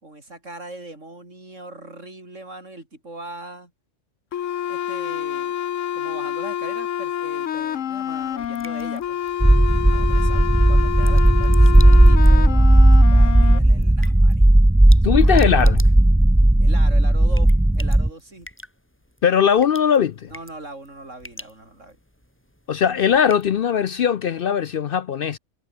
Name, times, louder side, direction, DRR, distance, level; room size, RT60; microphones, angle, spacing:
voice 1, 0.0-3.7 4.7-5.6 5.9-9.2 9.9-14.4 15.1-15.7 16.6-18.5 20.3-22.0, right 2 dB, 80° right, 6.2 m, -40 dB
sound 1, 4.3-13.6, left 10 dB, 90° left, 1.2 m, -27 dB
sound 2, 7.8-24.1, equal, 10° left, 7.0 m, -47 dB
sound 3, 9.4-18.1, right 1 dB, 5° right, 0.5 m, -14 dB
voice 2, 15.0-15.8 19.2-20.3 22.7-25.4, left 8 dB, 55° left, 0.7 m, -19 dB
omnidirectional pair, 1.3 m